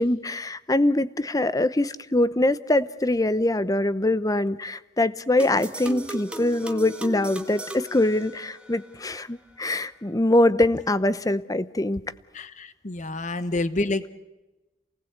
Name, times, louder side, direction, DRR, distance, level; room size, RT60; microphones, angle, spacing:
voice 1, 0.0-12.0, left 1 dB, 20° left, 0.7 m, -23 dB
sound 1, 5.4-8.9, right 1 dB, 5° right, 1.5 m, -36 dB
voice 2, 12.3-14.1, left 2 dB, 45° left, 1.1 m, -28 dB
28.0 x 19.0 x 8.0 m
head